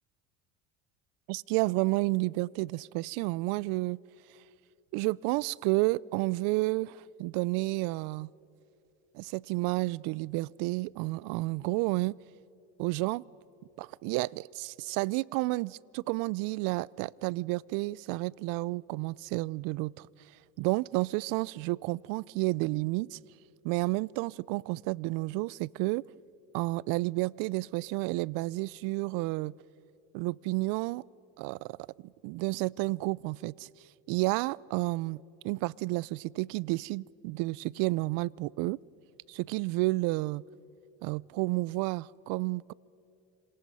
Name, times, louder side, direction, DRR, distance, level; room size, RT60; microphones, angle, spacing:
voice 1, 1.3-4.0 4.9-8.3 9.1-12.2 12.8-13.2 13.8-20.1 20.6-23.2 23.6-26.0 26.5-29.6 30.1-31.0 31.4-31.8 32.2-33.7 34.1-38.8 39.3-40.4 41.0-42.7, right 22 dB, 70° right, 0.5 m, -31 dB
27.0 x 26.5 x 5.5 m
supercardioid pair, 105°, 36 cm